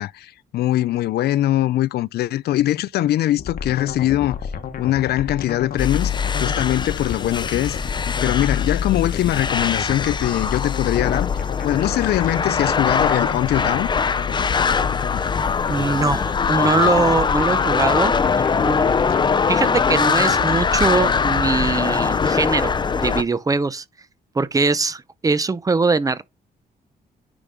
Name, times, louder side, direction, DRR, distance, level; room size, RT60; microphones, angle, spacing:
voice 1, 0.0-4.4 4.8-7.9 8.2-11.3 11.6-13.9, left 14 dB, 80° left, 0.4 m, -22 dB
sound 1, 3.4-22.3, left 7 dB, 60° left, 1.1 m, -31 dB
sound 2, 5.8-23.2, left 5 dB, 30° left, 0.6 m, -22 dB
voice 2, 15.7-18.1 18.6-18.9 19.5-23.8 24.3-26.2, right 3 dB, 20° right, 0.7 m, -22 dB
9.7 x 5.2 x 3.6 m
cardioid pair, 135°, 16 cm